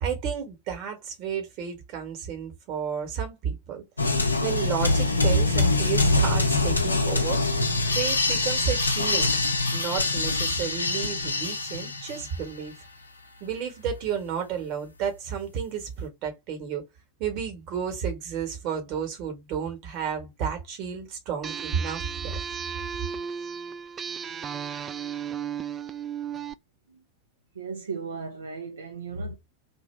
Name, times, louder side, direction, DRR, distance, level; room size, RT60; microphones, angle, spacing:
voice 1, 0.0-3.8 4.4-7.4 7.9-9.3 9.7-12.7 13.4-16.8 17.2-22.3, right 7 dB, 40° right, 1.4 m, -31 dB
sound 1, 4.0-12.4, left 3 dB, 80° left, 0.6 m, -24 dB
sound 2, 21.4-26.5, right 7 dB, 25° right, 0.3 m, -34 dB
voice 2, 27.5-29.4, right 4 dB, 70° right, 0.6 m, -36 dB
2.9 x 2.6 x 4.3 m
figure-of-eight pair, 90°, 0 cm